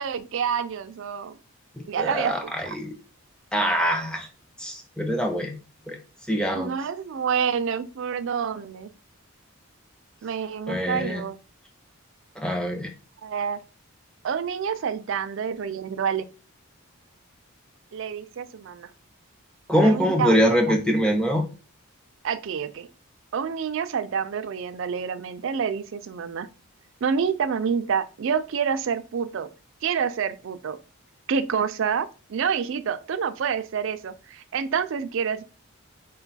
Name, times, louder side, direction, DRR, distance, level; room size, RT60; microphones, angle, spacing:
voice 1, 0.0-1.3 1.9-2.4 2.6-2.8 6.5-8.9 10.2-11.4 13.2-13.6 14.2-16.2 17.9-18.9 19.8-20.4 20.7-20.8 22.2-22.9 23.3-26.5 27.0-29.5 29.8-30.8 31.3-35.4, right 7 dB, 55° right, 0.3 m, -28 dB
voice 2, 1.8-2.9 3.5-4.3 4.6-5.6 5.9-6.0 6.3-6.7 10.7-11.3 12.4-12.9 19.7-21.5, equal, 5° left, 0.5 m, -23 dB
4.4 x 2.3 x 3.9 m
head